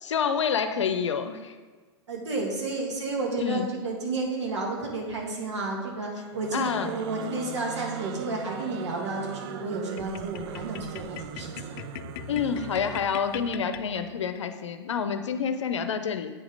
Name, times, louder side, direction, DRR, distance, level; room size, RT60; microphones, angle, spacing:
voice 1, 0.0-1.5 3.4-3.7 6.5-6.9 12.3-16.3, left 6 dB, 80° left, 9 dB, 0.7 m, -28 dB
voice 2, 2.1-11.8, right 3 dB, 75° right, -1 dB, 2.3 m, -31 dB
sound 1, 6.3-13.6, right 9 dB, 55° right, 0.5 m, -40 dB
sound 2, 10.0-14.4, left 13 dB, 50° left, 0.4 m, -41 dB
8.4 x 4.9 x 5.3 m, 1.4 s
hypercardioid pair, 100°, 15 cm